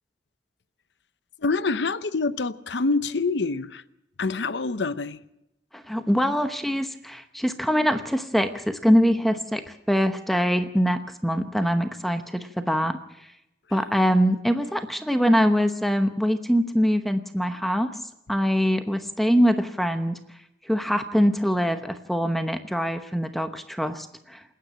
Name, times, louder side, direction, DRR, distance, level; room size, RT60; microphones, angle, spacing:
voice 1, 1.4-3.8 4.2-5.2, left 3 dB, 80° left, 0.8 m, -26 dB
voice 2, 5.7-13.3 13.7-17.9 18.3-20.2 20.6-24.4, equal, ahead, 0.9 m, -23 dB
28.0 x 9.4 x 9.9 m
head